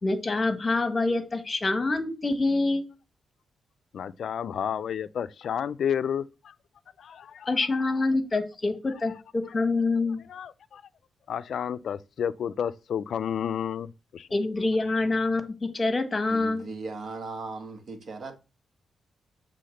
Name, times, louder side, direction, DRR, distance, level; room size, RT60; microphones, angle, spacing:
voice 1, 0.0-2.9 7.5-10.2 14.3-16.7, left 3 dB, 25° left, 1.3 m, -26 dB
voice 2, 3.9-6.5 7.0-7.5 10.3-10.8 11.3-14.3, left 8 dB, 70° left, 0.4 m, -31 dB
voice 3, 16.3-18.4, right 3 dB, 55° right, 1.4 m, -37 dB
7.6 x 3.5 x 6.4 m
cardioid pair, 110°, 0 cm